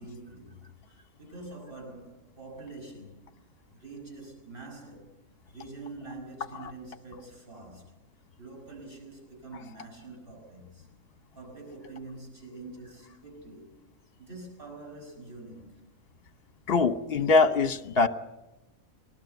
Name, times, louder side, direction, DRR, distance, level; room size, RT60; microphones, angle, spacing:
voice 1, 0.0-3.3 3.7-5.1 5.5-7.9 8.4-10.9 11.3-13.8 14.2-15.8, right 2 dB, 35° right, 6.5 m, -45 dB
voice 2, 16.7-18.1, left 4 dB, 45° left, 1.2 m, -23 dB
23.5 x 20.0 x 8.0 m
omnidirectional pair, 1.5 m